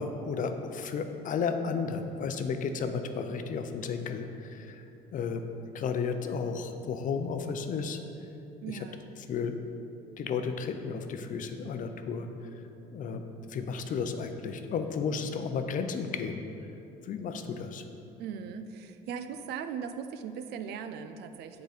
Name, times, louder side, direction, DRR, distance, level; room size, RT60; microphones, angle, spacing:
voice 1, 0.0-4.8 5.1-5.4 5.7-8.0 9.3-9.5 10.2-12.3 12.9-13.2 13.5-16.4 17.1-17.8, left 5 dB, 50° left, 7 dB, 0.5 m, -33 dB
voice 2, 8.6-9.1 18.2-21.6, right 7 dB, 75° right, 9 dB, 0.5 m, -39 dB
7.9 x 3.9 x 5.0 m, 2.9 s
cardioid pair, 110°, 17 cm